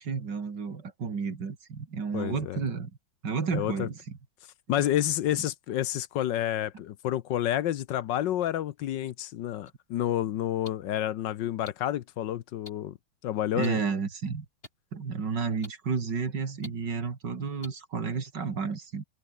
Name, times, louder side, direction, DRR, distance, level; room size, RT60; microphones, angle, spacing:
voice 1, 0.0-2.9 3.2-4.0 13.5-14.4 14.9-19.0, right 5 dB, 65° right, 3.2 m, -31 dB
voice 2, 2.1-2.6 3.5-3.9 4.7-13.0 13.2-13.8, left 12 dB, 70° left, 1.4 m, -29 dB
sound 1, 9.7-9.8 10.7-10.8 11.7-11.8 12.7-12.8 13.6-13.7 14.6-14.7 15.6-15.7 16.6-16.7 17.6-17.7, left 2 dB, 30° left, 4.2 m, -43 dB
omnidirectional pair, 2.1 m